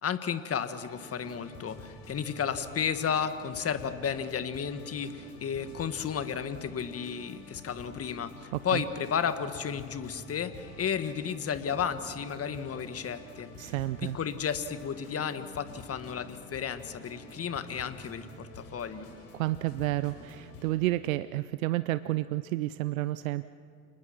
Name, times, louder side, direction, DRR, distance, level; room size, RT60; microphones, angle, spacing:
voice 1, 0.0-13.7 14.1-19.1, left 7 dB, 35° left, 10 dB, 1.7 m, -33 dB
sound 1, 0.8-20.7, left 1 dB, 60° left, 6.3 m, -48 dB
voice 2, 8.5-8.8 13.6-14.2 19.3-23.4, right 16 dB, 85° right, 15 dB, 0.6 m, -30 dB
28.5 x 20.5 x 6.0 m, 2.3 s
hypercardioid pair, 70°, 40 cm